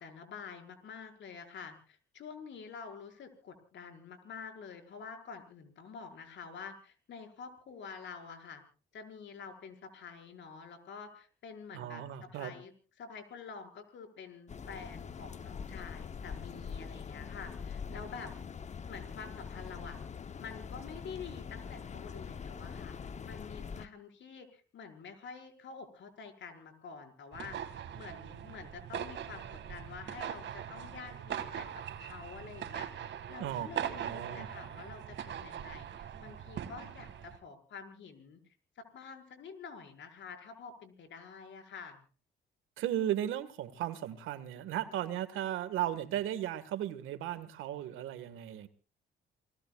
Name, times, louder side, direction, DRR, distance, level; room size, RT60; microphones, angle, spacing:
voice 1, 0.0-8.6 8.9-12.0 12.3-12.7 13.0-18.3 18.9-20.0 20.4-38.4 38.8-42.0, left 5 dB, 70° left, 5.3 m, -48 dB
voice 2, 11.7-12.5 33.4-33.7 34.0-34.5 42.8-48.7, right 12 dB, 90° right, 1.7 m, -36 dB
sound 1, 14.5-23.9, left 6 dB, 35° left, 0.8 m, -43 dB
sound 2, 27.3-37.4, right 9 dB, 65° right, 2.0 m, -41 dB
29.0 x 20.0 x 2.4 m
cardioid pair, 90°, 20 cm